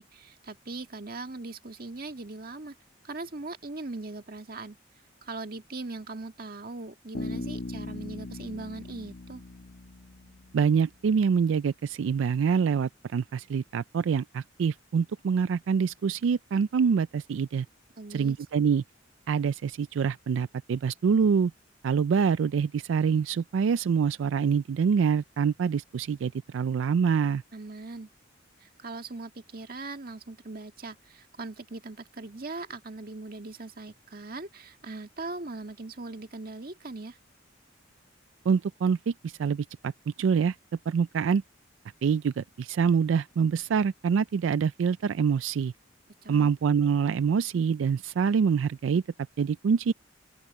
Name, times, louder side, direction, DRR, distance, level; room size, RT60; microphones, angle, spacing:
voice 1, 0.0-2.8 3.0-4.8 5.2-9.4 18.0-18.4 27.5-28.1 28.6-37.2 46.2-46.5, right 3 dB, 50° right, 1.9 m, -40 dB
Bass guitar, 7.1-10.8, left 2 dB, 70° left, 1.5 m, -39 dB
voice 2, 10.5-17.7 18.1-18.8 19.3-21.5 21.8-27.4 38.5-40.6 40.9-41.4 42.0-45.7 46.3-49.0 49.4-49.9, right 6 dB, 85° right, 0.3 m, -25 dB
open air
head